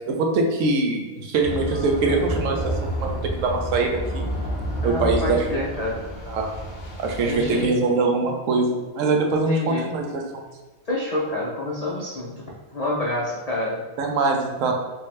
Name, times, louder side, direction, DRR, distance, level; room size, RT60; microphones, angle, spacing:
voice 1, 0.1-2.7 3.0-4.3 4.8-5.5 6.3-6.5 7.0-10.4 14.0-14.7, right 3 dB, 75° right, 2 dB, 1.0 m, -23 dB
sound 1, 1.4-7.7, equal, 40° left, 0.8 m, -30 dB
voice 2, 4.8-6.0 7.2-7.7 9.3-9.9 10.9-13.8, left 2 dB, 65° left, -5 dB, 0.3 m, -28 dB
3.6 x 2.7 x 3.1 m, 1.2 s
omnidirectional pair, 1.4 m